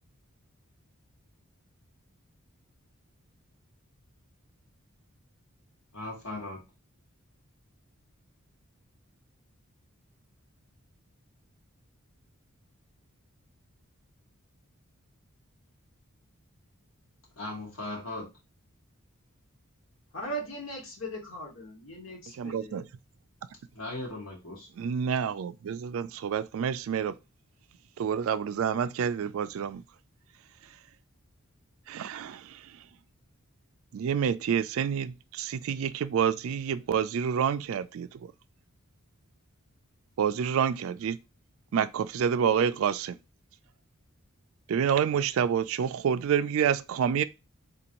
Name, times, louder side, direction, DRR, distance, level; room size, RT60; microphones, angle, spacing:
voice 1, 5.9-6.6 17.4-18.3 23.7-24.7, left 2 dB, 80° left, 2.0 m, -38 dB
voice 2, 20.1-22.9, right 1 dB, 60° left, 1.4 m, -39 dB
voice 3, 22.4-22.8 24.8-27.1 28.0-29.8 31.9-32.4 33.9-38.1 40.2-41.2 41.7-43.2 44.7-47.2, right 7 dB, 65° right, 0.3 m, -28 dB
3.8 x 2.6 x 2.9 m
head